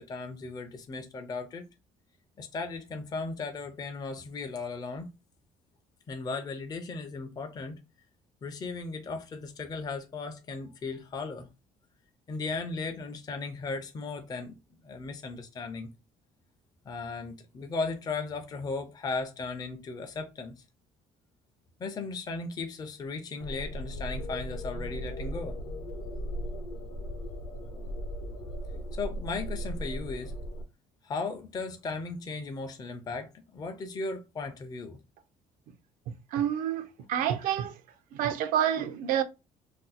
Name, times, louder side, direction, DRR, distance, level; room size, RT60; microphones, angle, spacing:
voice 1, 0.0-1.6 2.4-5.1 6.1-7.8 8.4-11.5 12.3-14.5 14.8-15.9 16.9-20.5 21.8-25.6 28.9-30.4 31.0-35.0, left 4 dB, 30° left, 0.4 m, -36 dB
sound 1, 23.4-30.6, equal, 65° left, 0.8 m, -37 dB
voice 2, 36.3-37.8 38.1-39.2, right 10 dB, 80° right, 0.5 m, -28 dB
2.6 x 2.0 x 3.9 m
cardioid pair, 115°, 14 cm